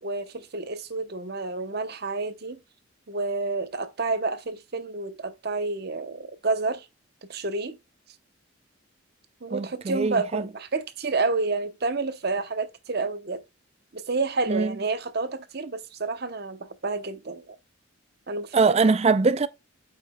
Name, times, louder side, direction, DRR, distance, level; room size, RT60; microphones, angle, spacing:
voice 1, 0.0-2.6 3.1-6.9 7.3-7.8 9.4-13.4 13.9-17.6 18.3-18.9, right 3 dB, 50° right, 0.8 m, -29 dB
voice 2, 9.5-10.4 14.5-14.7 18.5-19.5, right 4 dB, 30° right, 0.4 m, -22 dB
8.8 x 5.1 x 2.2 m
head